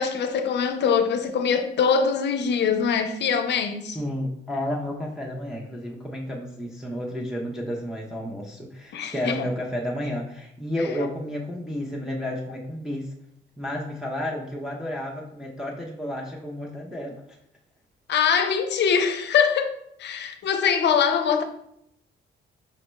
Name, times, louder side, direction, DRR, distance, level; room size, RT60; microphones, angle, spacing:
voice 1, 0.0-4.0 8.9-9.4 10.8-10.9 18.1-21.4, left 6 dB, 60° left, 0.5 m, -23 dB
voice 2, 3.9-13.1 13.6-17.2, left 1 dB, 5° right, 0.5 m, -31 dB
5.3 x 2.1 x 3.0 m
cardioid pair, 90°, 20 cm